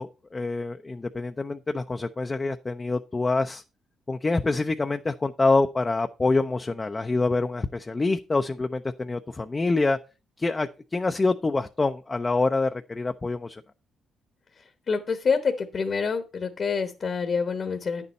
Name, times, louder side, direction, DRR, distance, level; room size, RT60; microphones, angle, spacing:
voice 1, 0.0-3.6 4.1-10.0 10.4-13.6, left 3 dB, 25° left, 0.5 m, -26 dB
voice 2, 14.9-18.1, left 5 dB, 50° left, 1.1 m, -27 dB
9.6 x 6.9 x 4.2 m
cardioid pair, 90°, 0 cm